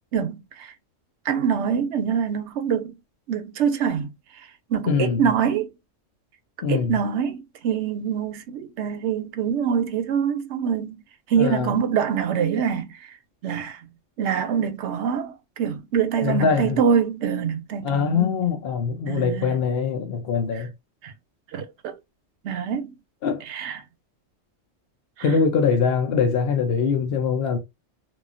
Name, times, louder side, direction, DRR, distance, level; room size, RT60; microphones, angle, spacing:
voice 1, 0.1-0.7 1.3-3.0 3.3-4.1 4.7-5.7 6.7-11.0 11.3-13.0 13.4-13.8 14.2-18.4 19.1-19.5 21.0-21.1 21.5-21.9 22.4-23.0 23.5-23.8, right 7 dB, 70° right, 0.9 m, -25 dB
voice 2, 4.9-5.3 6.6-7.0 11.3-11.7 16.2-16.8 17.8-20.7 23.2-23.4 25.2-27.6, left 6 dB, 60° left, 0.7 m, -23 dB
2.9 x 2.3 x 2.4 m
omnidirectional pair, 1.3 m